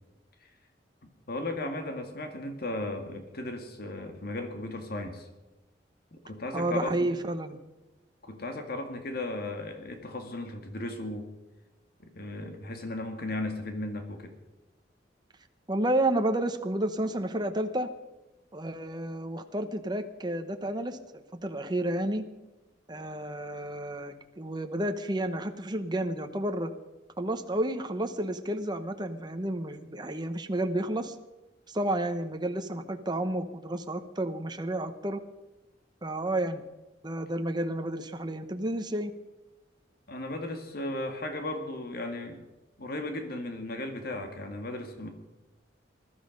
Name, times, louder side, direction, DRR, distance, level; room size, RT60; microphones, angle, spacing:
voice 1, 1.3-5.3 6.1-7.0 8.2-11.3 12.0-14.3 40.1-42.4 42.8-45.1, left 2 dB, 60° left, 5 dB, 2.0 m, -36 dB
voice 2, 6.5-7.6 15.7-17.9 18.5-22.2 22.9-26.7 27.2-31.1 31.7-35.2 36.0-36.6 37.0-39.1, right 1 dB, 25° right, 6 dB, 1.0 m, -31 dB
20.5 x 12.5 x 5.3 m, 1.1 s
head